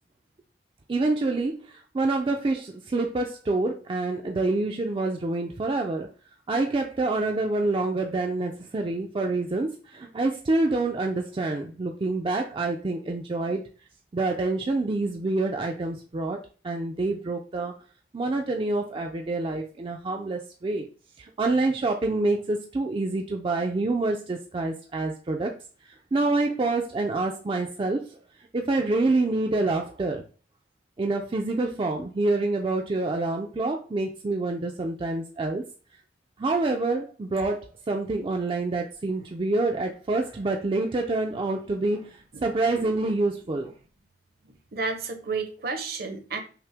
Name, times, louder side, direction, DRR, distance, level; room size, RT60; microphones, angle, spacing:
voice 1, 0.9-6.1 6.5-13.6 14.1-16.4 16.6-17.8 18.1-20.9 21.2-25.5 26.1-28.2 28.5-30.2 31.0-35.6 36.4-43.7, right 2 dB, 30° right, 2 dB, 0.4 m, -27 dB
voice 2, 44.5-46.4, right 4 dB, 60° right, 7 dB, 0.7 m, -32 dB
5.7 x 2.1 x 3.3 m, 0.37 s
head